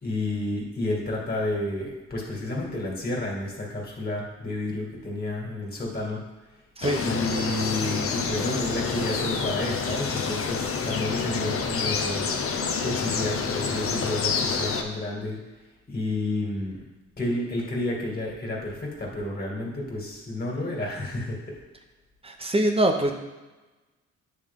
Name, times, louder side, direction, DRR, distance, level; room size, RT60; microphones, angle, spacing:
voice 1, 0.0-6.2 7.0-12.3 12.8-15.4 15.9-16.8 17.2-21.6, left 2 dB, 30° left, -3 dB, 2.3 m, -30 dB
sound 1, 6.8-14.8, left 5 dB, 45° left, 0.8 m, -28 dB
voice 2, 22.2-23.1, right 1 dB, 20° right, 4 dB, 0.9 m, -23 dB
9.4 x 3.5 x 3.7 m, 1.2 s
cardioid pair, 90°, 30 cm